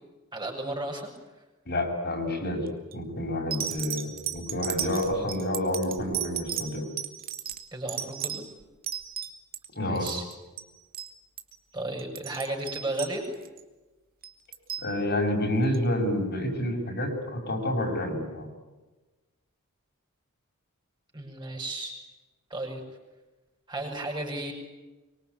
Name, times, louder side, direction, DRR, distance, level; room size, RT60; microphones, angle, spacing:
voice 1, 0.3-1.1 7.7-8.4 9.8-10.3 11.7-13.3 21.1-22.0 22.5-22.8 23.7-24.5, right 2 dB, 20° right, 1 dB, 7.4 m, -34 dB
voice 2, 1.6-2.7 2.9-6.9 9.7-10.1 14.8-18.5, left 1 dB, 50° left, 2 dB, 6.5 m, -29 dB
sound 1, 2.7-2.9 3.5-9.7 10.0-10.3 10.6-10.7 10.9-11.1 11.4-11.6 12.0-13.6 14.2-14.9 15.7-15.8, right 11 dB, 45° right, 2.4 m, -35 dB
25.0 x 25.0 x 9.7 m, 1.2 s
head